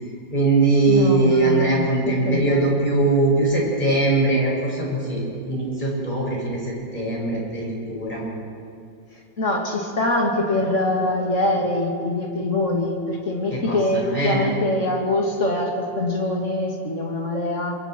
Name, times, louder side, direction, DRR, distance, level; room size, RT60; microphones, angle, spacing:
voice 1, 0.3-8.2 13.5-14.5, right 2 dB, 25° left, -3 dB, 5.8 m, -21 dB
voice 2, 0.9-2.6 9.4-17.8, left 2 dB, 40° left, 0 dB, 2.8 m, -24 dB
27.0 x 23.0 x 4.6 m, 2.4 s
omnidirectional pair, 2.0 m